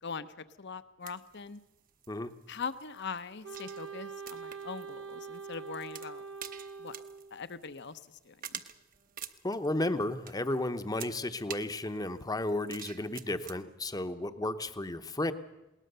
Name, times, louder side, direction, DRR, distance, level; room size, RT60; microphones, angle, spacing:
voice 1, 0.0-1.6 2.5-6.2 6.8-7.0 7.3-8.6, left 5 dB, 60° left, 13 dB, 0.9 m, -41 dB
sound 1, 1.0-13.6, right 9 dB, 45° right, 0.9 m, -49 dB
Wind instrument woodwind instrument, 3.4-7.4, right 5 dB, 75° right, 0.9 m, -44 dB
voice 2, 9.4-15.3, left 1 dB, 20° left, 10 dB, 0.9 m, -33 dB
20.5 x 18.5 x 6.8 m, 0.98 s
head